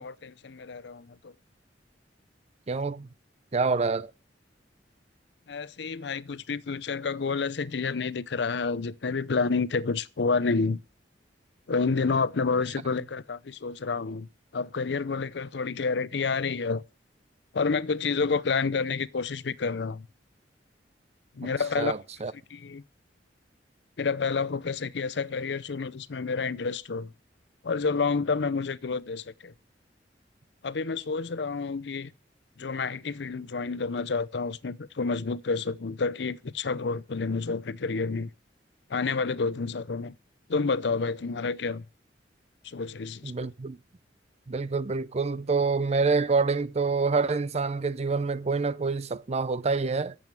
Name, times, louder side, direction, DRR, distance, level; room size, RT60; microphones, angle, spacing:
voice 1, 0.0-1.3 5.5-10.8 11.7-16.8 17.5-20.1 21.3-21.9 22.5-22.8 24.0-27.1 27.6-29.5 30.6-32.1 32.6-38.3 38.9-40.2 40.5-41.9 42.6-43.5, left 4 dB, 65° left, 0.6 m, -29 dB
voice 2, 2.7-3.1 3.5-4.1 21.8-22.3 43.2-43.8 44.5-50.2, right 4 dB, 35° right, 0.6 m, -27 dB
11.0 x 7.9 x 9.0 m
head